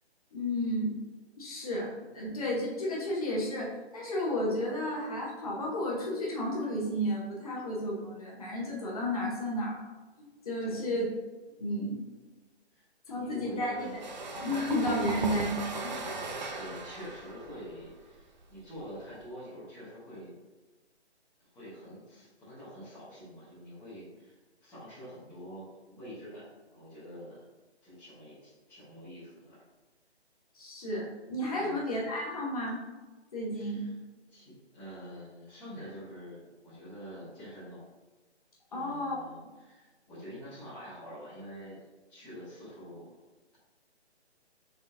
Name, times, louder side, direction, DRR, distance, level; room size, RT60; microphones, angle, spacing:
voice 1, 0.3-1.0 1.4-9.9 10.2-11.1 11.6-12.0 13.1-13.8 14.3-15.5 15.8-16.1 30.5-32.8 33.3-33.8 38.7-39.2, left 1 dB, 35° left, -4 dB, 0.9 m, -32 dB
voice 2, 12.7-14.0 15.1-15.3 16.5-20.3 21.5-27.4 27.8-29.6 31.6-31.8 33.5-33.9 34.3-37.8 38.7-41.8 42.1-43.1, equal, 5° left, -14 dB, 0.8 m, -46 dB
sound 1, 13.8-19.2, right 3 dB, 45° right, 0.5 m, -38 dB
4.0 x 4.0 x 2.5 m, 1.2 s
hypercardioid pair, 160°, 33 cm